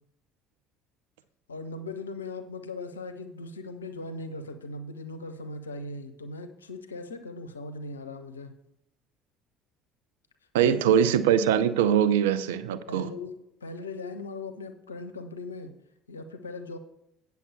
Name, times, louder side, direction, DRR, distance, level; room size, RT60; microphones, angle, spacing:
voice 1, 1.5-8.5 10.6-10.8 12.9-15.7 16.1-16.8, left 2 dB, 90° left, 0.6 m, -39 dB
voice 2, 10.5-13.1, right 9 dB, 75° right, 0.5 m, -22 dB
9.3 x 6.9 x 4.6 m
hypercardioid pair, 60°, 0 cm